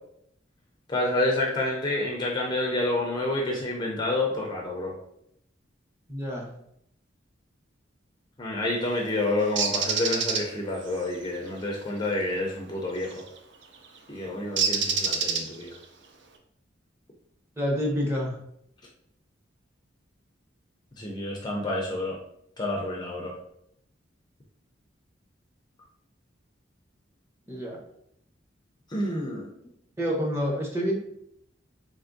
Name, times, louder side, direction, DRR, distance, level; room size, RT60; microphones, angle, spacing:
voice 1, 0.9-4.9 8.4-13.2 14.1-15.7 21.0-22.2 22.6-23.3 28.9-29.5, left 2 dB, 20° left, -1 dB, 0.5 m, -28 dB
voice 2, 6.1-6.5 17.6-18.3 27.5-27.8 30.0-30.9, equal, 15° right, -2 dB, 0.7 m, -28 dB
Bird, 9.6-10.4 13.0-13.3 14.6-15.8, right 5 dB, 65° right, 0.5 m, -26 dB
4.0 x 3.4 x 2.5 m, 0.73 s
head